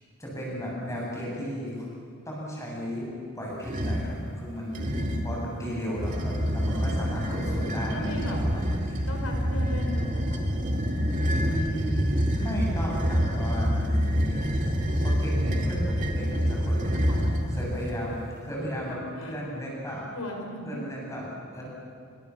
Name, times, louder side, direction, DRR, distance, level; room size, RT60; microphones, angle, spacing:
voice 1, 0.2-1.9 2.2-4.9 5.2-9.1 11.5-14.4 15.0-16.9 17.5-20.1 20.6-21.6, equal, 15° left, -4 dB, 8.0 m, -34 dB
sound 1, 3.6-4.1 4.7-5.4 6.0-18.0, equal, 35° right, 2.5 m, -27 dB
voice 2, 4.5-5.3 6.7-7.4 7.9-8.4 9.1-10.4 16.9-17.3 18.9-19.4 20.1-20.8, left 1 dB, 85° left, 2 dB, 5.5 m, -39 dB
28.0 x 24.5 x 7.3 m, 2.4 s
head